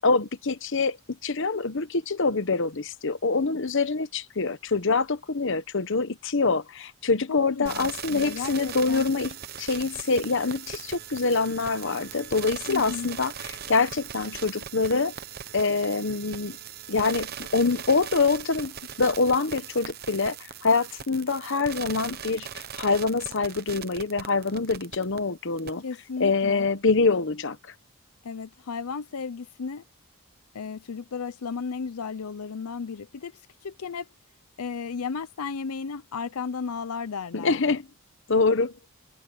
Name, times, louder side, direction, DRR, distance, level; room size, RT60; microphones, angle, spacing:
voice 1, 0.0-15.1 15.5-16.6 16.9-22.5 22.8-25.8 26.2-27.6 37.3-37.8 38.3-38.7, left 4 dB, 60° left, 1.0 m, -25 dB
voice 2, 7.3-9.1 12.7-13.1 25.8-26.6 28.2-29.8 30.5-34.1 34.6-37.8, left 5 dB, 85° left, 0.6 m, -34 dB
sound 1, 7.7-25.2 25.6-25.7, right 8 dB, 45° right, 0.9 m, -39 dB
head